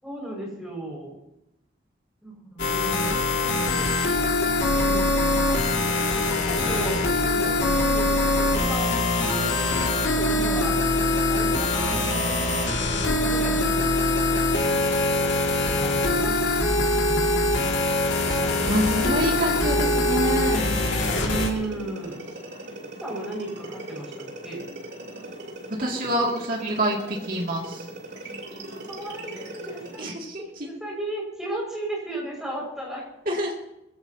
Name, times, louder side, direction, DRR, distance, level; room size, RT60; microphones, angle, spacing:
voice 1, 0.0-1.1 2.2-3.9 4.7-5.6 5.9-9.5 9.8-14.4 15.0-15.3 15.6-17.3 21.1-22.2 23.0-24.7 28.9-30.1 30.6-33.1, right 1 dB, 5° right, -3 dB, 5.8 m, -35 dB
sound 1, 2.6-21.5, left 2 dB, 80° left, 2.3 m, -23 dB
sound 2, 18.3-30.1, right 1 dB, 65° right, 3.1 m, -39 dB
voice 2, 18.6-20.8 25.8-27.8 30.0-30.4 33.3-33.5, equal, 50° right, -2 dB, 2.5 m, -26 dB
21.0 x 16.0 x 2.9 m, 0.87 s
head